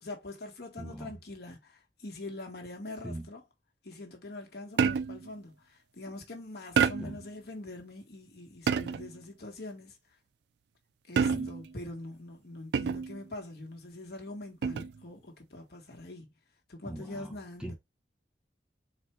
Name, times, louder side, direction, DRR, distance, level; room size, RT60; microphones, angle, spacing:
voice 1, 0.0-3.4 3.8-10.0 11.1-16.3 16.7-17.7, left 2 dB, 60° left, 1.4 m, -44 dB
voice 2, 0.8-1.1 3.0-3.3 7.0-7.2 11.1-11.5 16.9-17.7, right 1 dB, 5° right, 0.7 m, -41 dB
sound 1, 4.8-5.3 6.8-7.3 8.7-9.2 11.2-11.7 12.7-13.2 14.6-15.0, right 6 dB, 70° right, 0.3 m, -28 dB
4.3 x 2.4 x 4.5 m
head